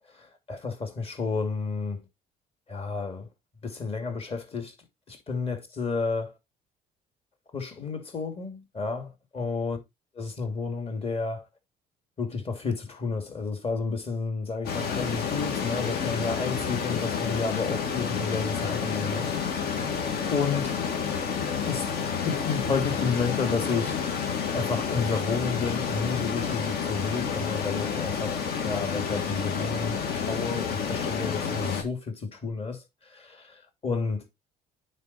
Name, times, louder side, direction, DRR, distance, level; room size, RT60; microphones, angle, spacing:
voice 1, 0.2-2.0 2.7-3.3 3.6-4.7 5.1-6.3 7.5-9.8 10.1-11.4 12.2-19.3 19.6-20.0 20.3-20.8 21.7-21.8 22.2-24.0 24.5-34.2, left 4 dB, 35° left, 2.6 m, -31 dB
sound 1, 14.6-31.8, left 6 dB, 65° left, 2.1 m, -29 dB
9.5 x 4.1 x 4.1 m
cardioid pair, 110°, 17 cm